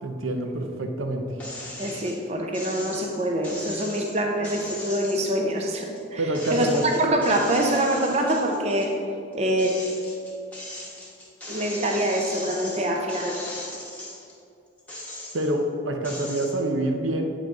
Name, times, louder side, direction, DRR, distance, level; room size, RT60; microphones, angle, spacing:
voice 1, 0.0-1.2 6.2-6.8 15.3-17.3, right 1 dB, 90° right, 4 dB, 0.7 m, -26 dB
sound 1, 1.4-2.2 2.5-6.0 6.3-8.9 9.3-14.3 14.8-15.6 16.0-16.6, left 1 dB, 10° left, 0.9 m, -38 dB
voice 2, 1.8-9.0 9.3-9.7 11.5-13.3, right 1 dB, 35° right, 2 dB, 0.5 m, -25 dB
8.0 x 3.9 x 4.7 m, 2.5 s
head